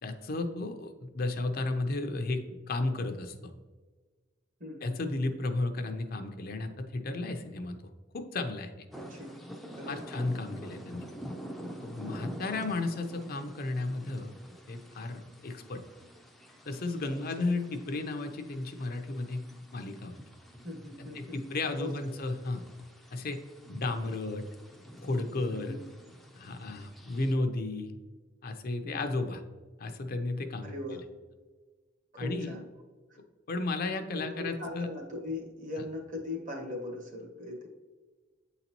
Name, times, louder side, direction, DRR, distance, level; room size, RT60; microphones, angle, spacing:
voice 1, 0.0-3.5 4.8-7.8 8.1-8.7 9.9-11.1 11.8-14.3 14.7-15.8 16.7-19.4 19.7-20.2 21.0-22.6 23.1-23.4 23.7-24.4 25.0-25.8 26.3-27.9 28.4-29.4 29.8-30.7 32.2-32.5 33.5-34.9, left 2 dB, 50° left, 6 dB, 0.5 m, -33 dB
voice 2, 4.6-4.9 8.9-9.4 9.7-10.1 12.0-12.4 17.1-17.5 20.6-21.5 21.8-21.9 25.5-25.8 28.8-29.1 30.6-31.0 32.1-32.7 33.1-33.2 34.1-37.7, left 2 dB, 40° right, 2 dB, 1.2 m, -40 dB
sound 1, 8.9-27.3, equal, ahead, 0.5 m, -47 dB
8.6 x 4.0 x 2.9 m, 1.4 s
head